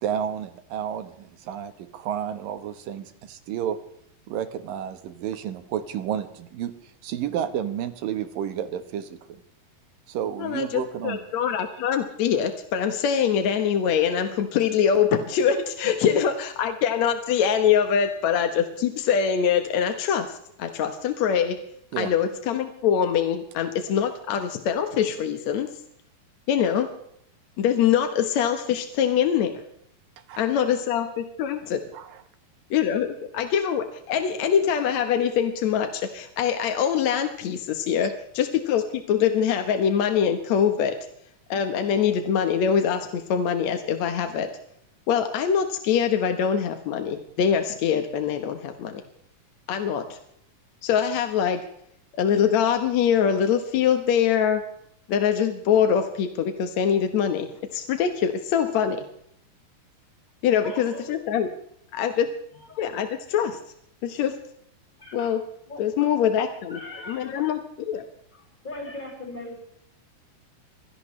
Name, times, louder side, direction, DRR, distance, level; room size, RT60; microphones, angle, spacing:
voice 1, 0.0-3.8 4.3-6.7 7.0-9.4 10.1-11.2 21.9-22.1 30.3-30.5 31.9-32.2, right 9 dB, 80° right, 10 dB, 2.9 m, -31 dB
voice 2, 10.4-21.6 22.0-25.7 26.5-26.9 27.6-29.5 30.4-31.8 32.7-40.9 41.5-44.5 45.1-49.0 49.7-50.2 50.8-51.7 52.1-54.6 55.1-59.1 60.4-61.5 61.9-62.3 62.8-63.6 64.0-64.4 65.1-65.4 65.8-66.8 67.1-67.6 67.9-68.0, left 8 dB, 60° left, 6 dB, 2.2 m, -23 dB
voice 3, 60.6-61.2 62.5-62.8 65.0-66.1 66.7-67.5 68.3-69.6, left 2 dB, 10° left, -1 dB, 5.6 m, -40 dB
24.5 x 16.5 x 3.2 m, 0.72 s
omnidirectional pair, 4.0 m